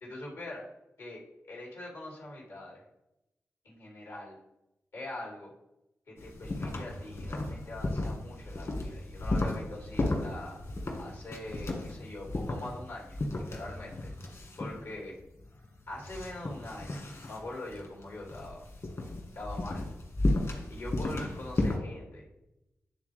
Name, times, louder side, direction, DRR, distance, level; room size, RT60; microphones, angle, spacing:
voice 1, 0.0-0.6 1.0-2.8 3.6-4.4 4.9-5.5 6.1-10.6 11.0-14.3 14.6-15.1 15.9-17.0 17.3-18.7 19.3-19.8 20.7-22.2, left 2 dB, 90° left, -3 dB, 2.5 m, -43 dB
sound 1, 6.2-21.8, left 2 dB, 55° left, 1.7 m, -34 dB
9.7 x 3.6 x 3.4 m, 0.88 s
cardioid pair, 45°, 6 cm